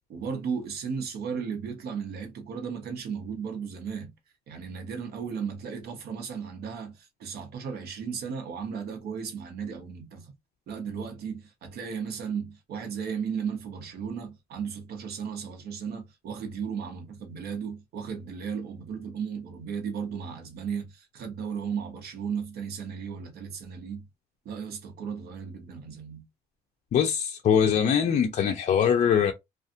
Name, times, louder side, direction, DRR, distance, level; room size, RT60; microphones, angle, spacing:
voice 1, 0.1-4.1 4.5-10.3 10.7-24.0 24.4-26.2, right 6 dB, 70° right, 0.9 m, -35 dB
voice 2, 26.9-29.3, left 8 dB, 45° left, 0.4 m, -22 dB
2.6 x 2.4 x 2.5 m
cardioid pair, 110°, 17 cm